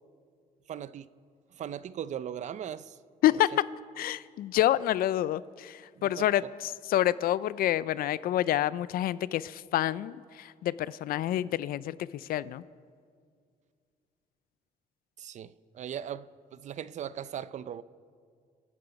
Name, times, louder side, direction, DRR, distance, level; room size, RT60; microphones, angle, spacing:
voice 1, 0.7-1.1 1.5-3.0 6.0-6.3 15.2-17.8, right 9 dB, 50° right, 0.5 m, -39 dB
voice 2, 3.2-3.5 4.0-12.6, left 13 dB, 75° left, 0.4 m, -28 dB
27.0 x 9.7 x 5.2 m
cardioid pair, 130°, 15 cm